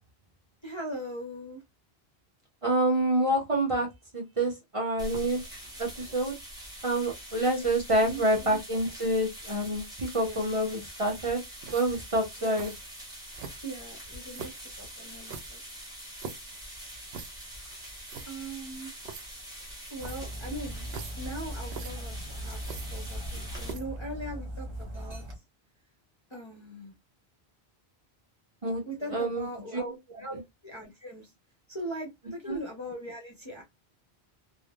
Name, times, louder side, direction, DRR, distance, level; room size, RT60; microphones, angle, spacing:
voice 1, 0.6-1.6 7.5-8.6 10.2-10.5 12.4-12.6 13.6-15.6 18.2-18.9 19.9-20.9 21.2-25.2 26.3-26.9 28.8-29.9 30.2-31.3 31.7-33.6, right 1 dB, 35° left, 0.6 m, -40 dB
voice 2, 2.6-3.9 4.1-5.4 5.8-6.4 6.8-11.4 11.7-12.7 28.6-28.8 29.1-29.5 29.7-29.9 30.3-30.4 32.5-32.6, right 1 dB, 35° right, 0.7 m, -27 dB
sound 1, 5.0-23.7, equal, 5° right, 0.8 m, -44 dB
sound 2, 11.6-12.1 12.5-12.8 13.3-13.8 14.3-14.7 15.2-16.5 17.1-17.5 17.8-17.9 18.0-18.3 19.0-19.2 20.0-20.3 20.8-21.3 21.6-21.9 22.6-23.3 23.6-24.0, right 5 dB, 75° right, 0.8 m, -43 dB
Dog, 20.0-25.4, right 1 dB, 60° right, 1.1 m, -39 dB
3.2 x 2.0 x 2.2 m
omnidirectional pair, 1.1 m